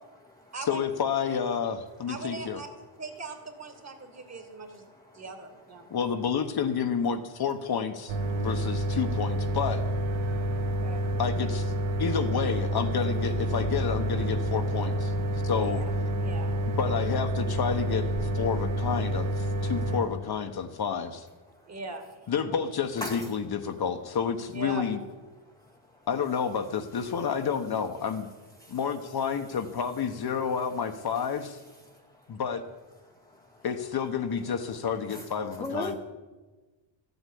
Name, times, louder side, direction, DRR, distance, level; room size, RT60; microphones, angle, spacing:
voice 1, 0.6-2.6 5.9-9.8 11.2-11.7 12.0-15.1 15.4-15.8 16.7-18.1 18.3-21.3 22.3-25.0 26.1-28.3 28.7-31.6 32.3-32.6 33.6-36.0, left 7 dB, 50° left, 7 dB, 1.1 m, -30 dB
voice 2, 2.1-2.7 3.0-4.9 5.1-5.9 10.6-11.0 15.6-15.9 16.2-16.5 21.7-22.1 22.5-22.7 24.5-24.9, right 3 dB, 30° right, 6 dB, 2.2 m, -40 dB
sound 1, 8.1-20.0, equal, 65° right, 2.0 m, -28 dB
voice 3, 10.2-10.9 15.3-15.5 23.0-23.3 28.6-28.8 31.9-32.0 33.3-33.6 35.1-35.2 35.6-36.0, left 2 dB, 5° left, 0 dB, 0.9 m, -38 dB
14.0 x 8.1 x 10.0 m, 1.2 s
wide cardioid pair, 170°, 49 cm